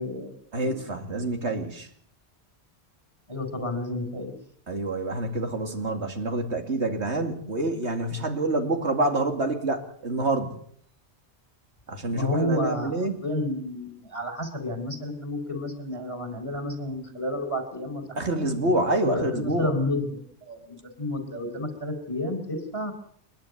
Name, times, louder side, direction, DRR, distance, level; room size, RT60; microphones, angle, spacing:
voice 1, 0.0-0.7 3.3-4.3 12.1-12.9 13.2-18.4 19.0-22.9, left 1 dB, 30° left, 7 dB, 4.3 m, -31 dB
voice 2, 0.5-1.9 4.7-10.6 11.9-13.2 18.2-19.7, right 2 dB, 85° right, 5 dB, 2.7 m, -27 dB
28.0 x 10.5 x 9.5 m, 0.66 s
omnidirectional pair, 1.1 m